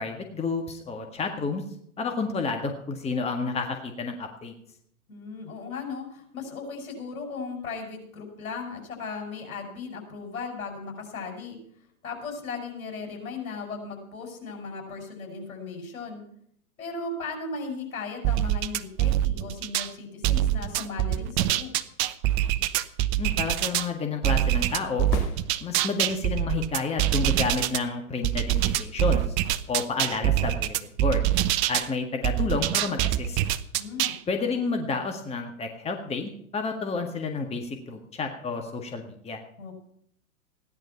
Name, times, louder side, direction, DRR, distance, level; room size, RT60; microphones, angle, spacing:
voice 1, 0.0-1.6 2.0-4.5 23.2-25.1 25.6-29.4 29.7-31.2 31.7-33.4 34.3-39.4, left 4 dB, 15° left, 4 dB, 1.8 m, -30 dB
voice 2, 5.1-11.6 12.0-16.3 16.8-21.7 33.7-34.1 39.6-39.8, left 4 dB, 70° left, 4 dB, 6.0 m, -37 dB
sound 1, 18.2-19.9 20.2-23.9 24.2-27.8 28.2-31.9 32.2-34.2, right 13 dB, 35° right, 0.9 m, -24 dB
sound 2, 25.1-26.2 30.1-30.2, left 8 dB, 50° left, 2.7 m, -36 dB
16.5 x 10.5 x 5.8 m, 0.68 s
hypercardioid pair, 110°, 43 cm